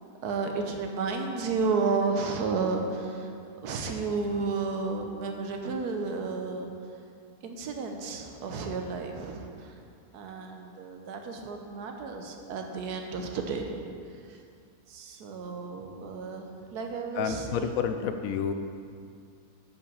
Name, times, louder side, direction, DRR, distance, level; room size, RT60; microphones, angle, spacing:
voice 1, 0.2-3.3 3.6-6.7 7.4-9.8 10.1-13.7 14.3-14.4 14.9-17.8, right 4 dB, 80° right, 3 dB, 1.4 m, -32 dB
voice 2, 17.2-18.5, left 7 dB, 70° left, 8 dB, 0.9 m, -29 dB
8.7 x 5.7 x 5.4 m, 2.4 s
omnidirectional pair, 1.7 m